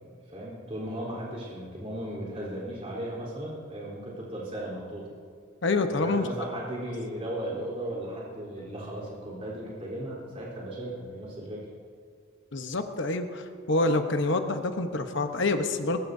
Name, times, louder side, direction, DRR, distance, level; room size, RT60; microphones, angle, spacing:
voice 1, 0.0-5.1 5.9-11.7, right 1 dB, 30° right, -5 dB, 3.8 m, -36 dB
voice 2, 5.6-6.2 12.5-16.0, left 2 dB, 60° left, 6 dB, 1.0 m, -27 dB
Keyboard (musical), 8.6-10.8, right 1 dB, 20° left, 4.6 m, -54 dB
21.0 x 21.0 x 2.7 m, 2.3 s
head